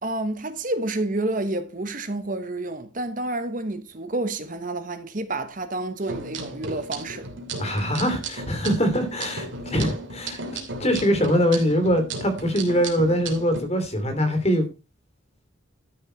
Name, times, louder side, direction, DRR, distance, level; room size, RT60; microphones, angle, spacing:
voice 1, 0.0-7.3, right 2 dB, 40° right, 1.1 m, -29 dB
sound 1, 6.0-13.6, right 3 dB, 65° right, 2.8 m, -35 dB
voice 2, 7.6-10.4 10.8-14.7, equal, 30° left, 2.7 m, -23 dB
12.5 x 6.5 x 4.4 m
head